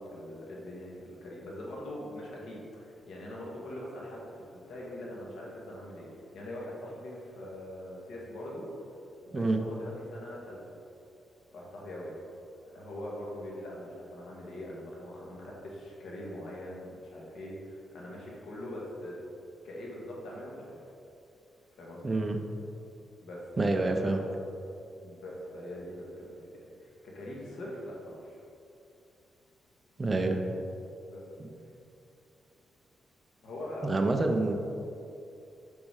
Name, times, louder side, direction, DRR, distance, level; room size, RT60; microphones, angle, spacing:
voice 1, 0.0-6.1 6.3-8.7 9.3-10.6 11.5-12.2 12.6-19.2 19.6-20.8 21.8-22.2 23.2-23.4 23.8-24.3 25.0-26.4 26.8-28.4 30.3-30.7 31.1-31.2 33.4-34.5, left 1 dB, 80° left, -4 dB, 1.8 m, -42 dB
voice 2, 22.0-22.4 23.6-24.2 30.0-30.4 31.4-31.5 33.8-34.5, right 2 dB, 20° right, 3 dB, 0.6 m, -27 dB
7.1 x 5.4 x 4.8 m, 2.7 s
wide cardioid pair, 150°, 0 cm